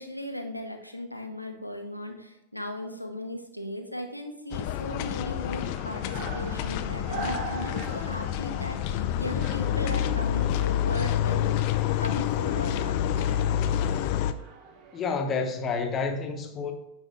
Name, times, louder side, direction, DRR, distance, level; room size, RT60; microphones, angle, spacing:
voice 1, 0.0-11.7 12.0-13.0, left 1 dB, 90° left, 0.9 m, -37 dB
sound 1, 4.5-14.3, left 10 dB, 45° left, 0.5 m, -28 dB
sound 2, 5.3-15.2, right 3 dB, 40° right, 1.1 m, -43 dB
voice 2, 14.9-16.7, left 4 dB, 25° left, 1.2 m, -29 dB
9.2 x 5.5 x 3.6 m
figure-of-eight pair, 90°, 0 cm